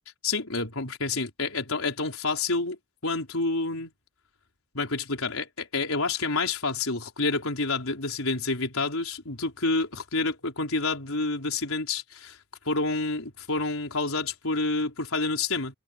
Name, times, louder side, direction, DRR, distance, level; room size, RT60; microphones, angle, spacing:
voice 1, 0.2-3.9 4.7-12.4 12.6-15.7, left 3 dB, 80° left, 4.4 m, -28 dB
head